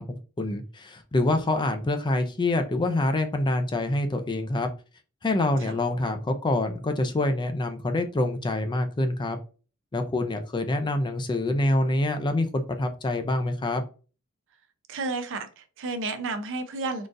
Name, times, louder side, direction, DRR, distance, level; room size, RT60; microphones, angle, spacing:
voice 1, 0.0-4.7 5.2-9.4 9.9-13.8, left 2 dB, 20° left, 7 dB, 0.4 m, -26 dB
voice 2, 14.9-17.1, right 3 dB, 60° right, 8 dB, 0.5 m, -32 dB
3.8 x 2.4 x 2.5 m, 0.35 s
head